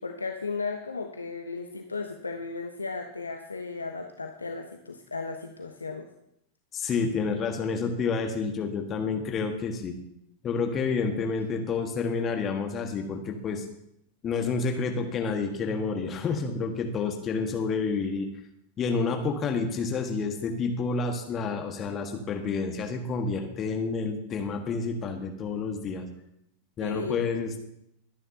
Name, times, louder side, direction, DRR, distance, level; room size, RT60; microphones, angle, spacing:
voice 1, 0.0-6.1 26.8-27.2, left 4 dB, 80° left, 4 dB, 1.0 m, -35 dB
voice 2, 6.7-9.9 10.4-13.6 14.2-18.3 18.8-26.1 26.8-27.6, left 4 dB, 25° left, 4 dB, 1.5 m, -29 dB
21.5 x 10.0 x 2.8 m, 0.76 s
figure-of-eight pair, 90°, 0 cm